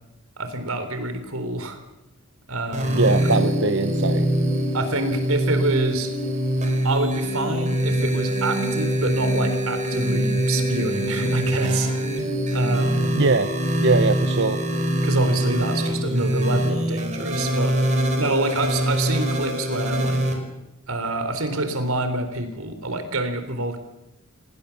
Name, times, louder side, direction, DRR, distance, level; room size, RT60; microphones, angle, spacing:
voice 1, 0.4-1.8 2.5-3.3 4.7-6.2 6.8-12.2 12.5-13.2 15.0-17.8 18.1-20.2 20.9-23.8, right 2 dB, 75° right, 9 dB, 3.8 m, -27 dB
sound 1, 2.7-20.3, right 1 dB, 35° right, 4.6 m, -23 dB
voice 2, 2.9-4.3 13.2-13.5 13.8-14.6, right 3 dB, 55° right, 9 dB, 1.0 m, -21 dB
27.0 x 19.5 x 7.2 m, 0.95 s
head